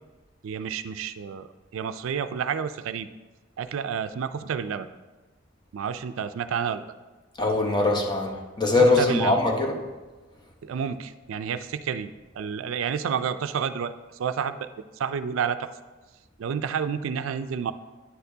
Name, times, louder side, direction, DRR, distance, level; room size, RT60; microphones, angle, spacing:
voice 1, 0.4-1.5 1.7-3.1 3.6-4.9 5.7-6.9 8.7-9.4 10.6-13.9 14.2-14.7 15.0-15.7 16.4-17.7, right 7 dB, 80° right, 12 dB, 0.4 m, -30 dB
voice 2, 7.4-8.3 8.6-9.7, left 2 dB, 20° left, 1 dB, 0.9 m, -21 dB
9.4 x 6.6 x 2.7 m, 1.2 s
head